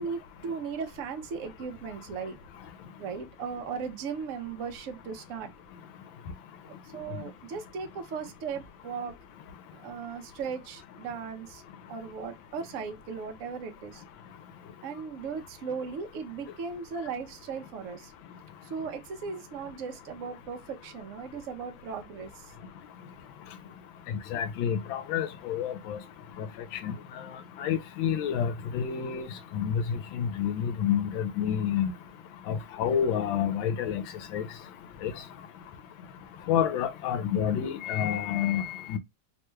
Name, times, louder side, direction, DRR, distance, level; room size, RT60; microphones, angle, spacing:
voice 1, 0.0-2.4 3.0-5.5 6.7-9.2 9.7-11.6 11.9-14.0 14.8-18.1 18.6-22.5, right 5 dB, 90° right, 0.6 m, -37 dB
voice 2, 24.1-26.0 26.4-26.5 26.8-26.9 27.6-29.3 29.5-31.9 32.5-34.0 34.3-34.4 35.0-35.1 36.5-39.0, left 8 dB, 85° left, 1.4 m, -29 dB
3.4 x 2.2 x 3.0 m
omnidirectional pair, 2.1 m